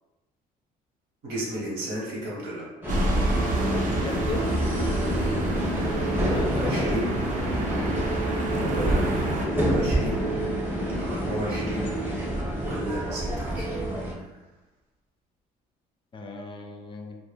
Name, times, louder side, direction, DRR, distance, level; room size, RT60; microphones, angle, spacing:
voice 1, 1.2-2.7 6.1-7.1 8.2-9.1 9.5-10.2 10.9-11.9 12.6-13.9 14.1-14.2, right 1 dB, 90° right, -5 dB, 1.0 m, -33 dB
sound 1, 2.8-14.1, right 1 dB, 10° right, 0.6 m, -27 dB
sound 2, 2.9-9.5, right 2 dB, 55° right, 0.4 m, -30 dB
voice 2, 4.0-4.6 6.1-7.0 7.9-8.1 16.1-17.2, left 3 dB, 30° left, 2 dB, 0.3 m, -36 dB
2.1 x 2.1 x 3.2 m, 1.1 s
cardioid pair, 110°, 17 cm